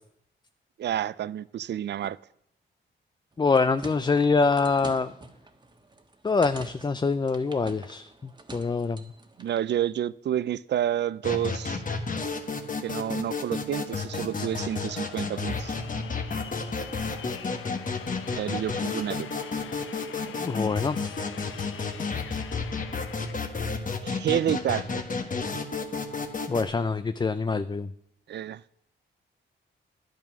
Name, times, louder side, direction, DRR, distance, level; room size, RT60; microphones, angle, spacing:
voice 1, 0.8-2.2 9.4-11.8 12.8-15.8 18.4-19.3 24.0-25.0 28.3-28.6, right 11 dB, 60° right, 0.4 m, -29 dB
sound 1, 3.3-9.7, right 2 dB, 20° right, 1.4 m, -46 dB
voice 2, 3.4-5.1 6.2-8.1 8.5-9.0 14.4-14.5 20.4-21.2 26.5-27.9, left 4 dB, 20° left, 0.4 m, -25 dB
sound 2, 11.2-26.6, left 4 dB, 40° left, 1.5 m, -32 dB
sound 3, 14.4-23.3, left 8 dB, 85° left, 0.8 m, -45 dB
10.5 x 9.0 x 6.1 m
cardioid pair, 80°, 20 cm